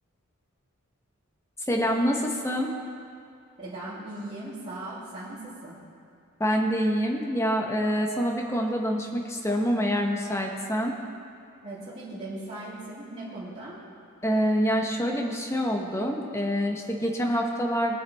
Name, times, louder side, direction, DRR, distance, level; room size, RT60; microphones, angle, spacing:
voice 1, 1.7-2.7 6.4-10.9 14.2-18.0, equal, 15° left, 1 dB, 1.1 m, -26 dB
voice 2, 3.6-5.8 11.6-13.8, right 1 dB, 30° right, -14 dB, 3.1 m, -38 dB
22.0 x 7.4 x 3.5 m, 2.4 s
head